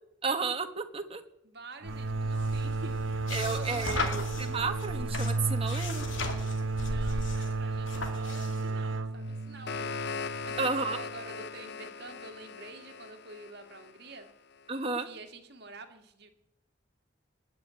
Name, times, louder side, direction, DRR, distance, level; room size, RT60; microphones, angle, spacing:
voice 1, 0.2-1.2 3.3-6.1 10.6-11.0 14.7-15.1, right 4 dB, 30° right, 7 dB, 1.3 m, -32 dB
voice 2, 1.4-4.3 6.8-10.0 10.4-14.3 15.0-16.3, right 2 dB, 55° right, 6 dB, 2.1 m, -47 dB
sound 1, 1.8-11.3, right 3 dB, 85° right, 0.9 m, -33 dB
sound 2, 1.9-8.7, left 3 dB, 75° left, 2.5 m, -38 dB
sound 3, 9.3-14.3, left 5 dB, 60° left, 0.6 m, -40 dB
20.0 x 7.1 x 9.5 m, 0.84 s
head